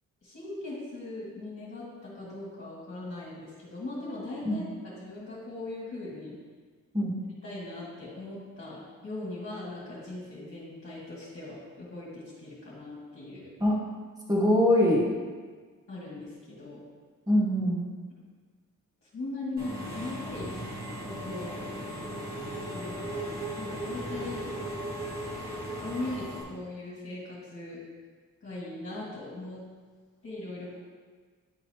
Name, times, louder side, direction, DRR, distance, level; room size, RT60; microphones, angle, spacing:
voice 1, 0.2-6.4 7.4-13.5 15.9-16.8 19.0-20.6 21.0-21.6 22.7-23.3 23.6-24.4 25.8-27.8 28.4-29.6 30.2-30.8, left 2 dB, 40° left, -9 dB, 1.7 m, -39 dB
voice 2, 14.3-15.1 17.3-17.8, left 1 dB, 10° right, -3 dB, 1.0 m, -23 dB
Engine / Mechanisms, 19.6-26.4, right 1 dB, 30° right, 1.5 m, -37 dB
10.5 x 4.0 x 2.9 m, 1.5 s
wide cardioid pair, 140°, 32 cm